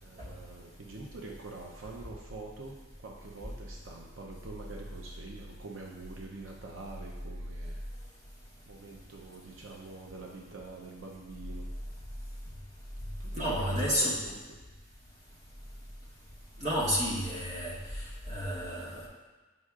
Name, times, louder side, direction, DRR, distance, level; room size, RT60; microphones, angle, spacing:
voice 1, 0.0-7.8 8.7-11.7 13.2-14.4 16.5-16.9, right 3 dB, 85° right, -1 dB, 0.7 m, -45 dB
voice 2, 13.3-14.2 16.6-17.8 18.3-19.1, equal, 35° right, -6 dB, 1.5 m, -30 dB
7.9 x 5.5 x 2.4 m, 1.3 s
head